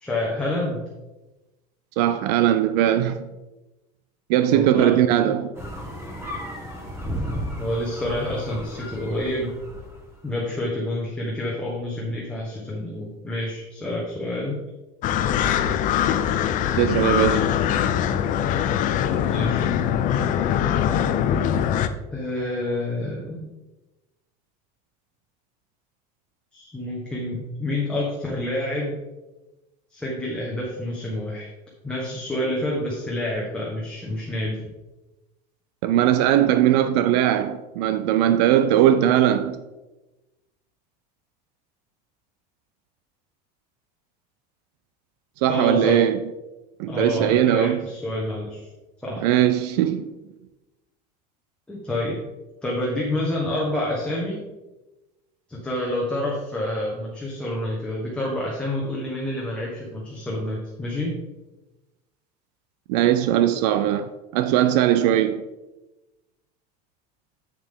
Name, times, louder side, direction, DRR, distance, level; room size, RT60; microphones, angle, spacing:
voice 1, 0.0-0.8 4.5-4.9 5.2-5.4 7.5-9.6 10.2-14.6 19.3-19.7 22.1-23.5 26.5-29.0 29.9-31.5 31.8-34.6 45.5-46.1 46.9-48.7 49.0-49.3 51.7-52.2 52.6-54.4 55.5-61.2, left 1 dB, 5° left, 1.3 m, -28 dB
voice 2, 2.0-3.3 4.3-5.5 16.8-17.5 35.8-39.6 45.4-46.2 46.8-47.9 49.2-50.1 62.9-65.4, right 11 dB, 75° right, 0.5 m, -20 dB
sound 1, 5.5-10.1, equal, 10° right, 1.9 m, -34 dB
sound 2, 15.0-21.9, left 9 dB, 40° left, 0.5 m, -22 dB
7.6 x 7.0 x 3.7 m
cardioid pair, 145°, 21 cm